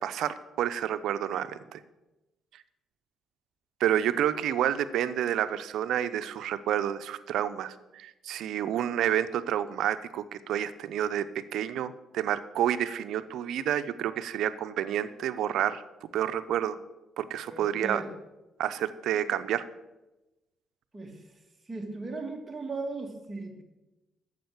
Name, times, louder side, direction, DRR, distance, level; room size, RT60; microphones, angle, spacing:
voice 1, 0.0-1.8 3.8-11.2 11.5-15.8 16.1-16.8 17.2-18.0 18.6-19.6, right 10 dB, 80° right, 12 dB, 0.7 m, -29 dB
voice 2, 17.4-18.1 20.9-21.4 21.7-23.6, right 3 dB, 20° right, 1 dB, 2.4 m, -37 dB
9.3 x 7.4 x 8.0 m, 1.0 s
cardioid pair, 90°, 0 cm